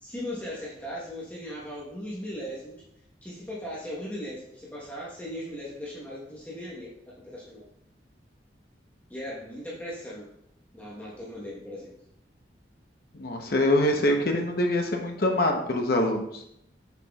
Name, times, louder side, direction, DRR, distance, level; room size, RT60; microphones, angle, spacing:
voice 1, 0.0-2.8 3.2-6.9 7.2-7.6 9.1-10.3 10.7-11.9, equal, 10° left, -7 dB, 1.1 m, -38 dB
voice 2, 13.1-16.4, left 1 dB, 55° left, 3 dB, 0.9 m, -24 dB
6.9 x 5.9 x 2.4 m, 0.76 s
head